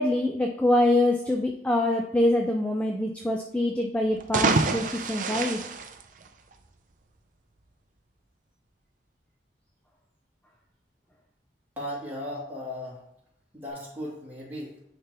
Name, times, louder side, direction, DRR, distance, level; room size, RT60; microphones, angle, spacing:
voice 1, 0.0-5.6, left 1 dB, 5° left, 1 dB, 0.4 m, -25 dB
sound 1, 4.1-6.7, right 3 dB, 45° right, 0.5 m, -27 dB
voice 2, 11.8-13.0 13.5-14.7, left 1 dB, 10° right, -7 dB, 2.3 m, -36 dB
10.0 x 3.4 x 3.0 m, 0.75 s
head